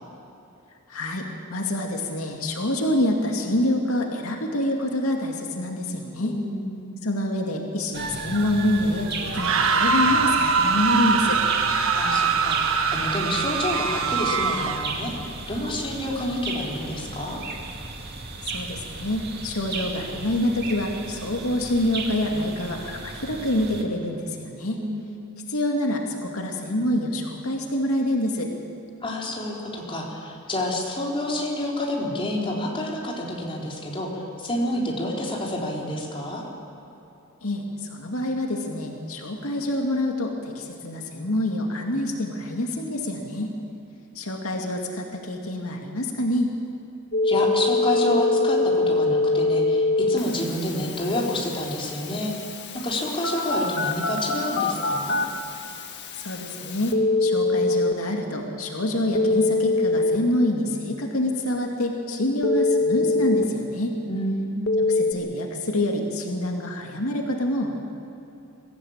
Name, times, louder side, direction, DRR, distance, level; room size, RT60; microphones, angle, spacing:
voice 1, 0.9-6.3 7.0-11.4 18.5-24.8 25.5-28.5 37.4-43.5 44.1-46.5 56.2-63.9 64.8-67.8, left 1 dB, 85° left, 1 dB, 2.3 m, -26 dB
voice 2, 6.2-7.0 11.9-15.1 15.5-17.4 24.8-25.0 29.0-36.4 47.2-52.3 52.7-55.2 64.1-64.6, left 1 dB, 25° left, -2 dB, 4.0 m, -29 dB
sound 1, 7.9-23.8, right 3 dB, 50° right, 2.3 m, -36 dB
sound 2, 9.2-15.0, right 5 dB, 70° right, 1.4 m, -23 dB
Telephone, 47.1-57.9 59.1-60.2 62.4-63.4 64.7-65.1, left 2 dB, 55° left, 1.8 m, -24 dB
23.0 x 15.5 x 8.7 m, 2.8 s
head